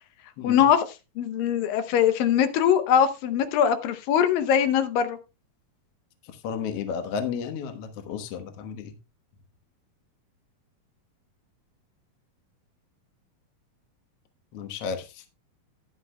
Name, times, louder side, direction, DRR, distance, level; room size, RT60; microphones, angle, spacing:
voice 1, 0.4-0.9 1.2-5.2, left 9 dB, 80° left, 2.5 m, -22 dB
voice 2, 6.4-8.9 14.5-15.3, left 6 dB, 60° left, 1.8 m, -33 dB
13.5 x 10.5 x 2.2 m
omnidirectional pair, 4.0 m